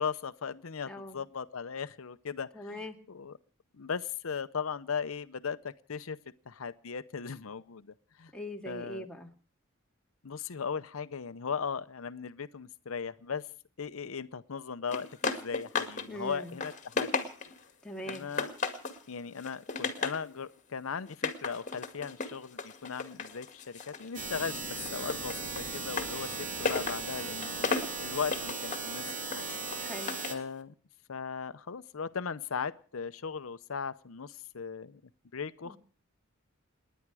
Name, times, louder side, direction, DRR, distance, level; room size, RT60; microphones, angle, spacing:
voice 1, 0.0-2.5 3.1-3.4 3.8-6.2 6.5-7.9 8.2-8.3 8.7-9.1 10.2-13.5 13.8-17.1 18.1-18.5 19.1-27.7 28.0-29.5 30.3-30.7 31.1-35.0 35.3-35.8, left 6 dB, 85° left, 13 dB, 0.7 m, -37 dB
voice 2, 0.8-1.2 2.5-3.0 8.3-9.3 16.1-16.6 17.8-18.3 29.8-30.2 35.6-35.8, equal, 5° left, 1 dB, 2.0 m, -41 dB
sound 1, 14.9-16.1 16.4-17.6 18.1-19.0 19.4-20.2 21.1-24.1 24.4-30.4, left 4 dB, 35° left, 2.1 m, -35 dB
sound 2, 24.1-30.3, right 3 dB, 40° right, 2.8 m, -37 dB
29.0 x 10.5 x 4.8 m, 0.42 s
head